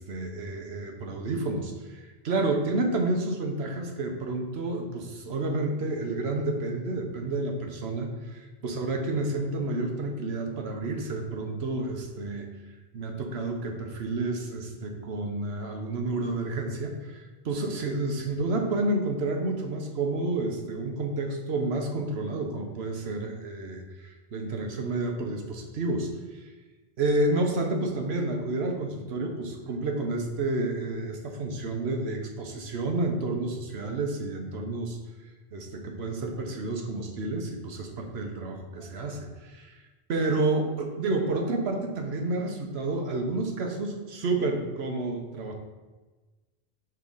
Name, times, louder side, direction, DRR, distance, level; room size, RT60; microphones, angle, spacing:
voice 1, 0.0-12.5 12.9-26.5 27.0-35.0 35.5-39.8 40.1-45.5, right 2 dB, 80° right, 3 dB, 1.2 m, -30 dB
5.4 x 3.8 x 5.4 m, 1.3 s
omnidirectional pair, 1.0 m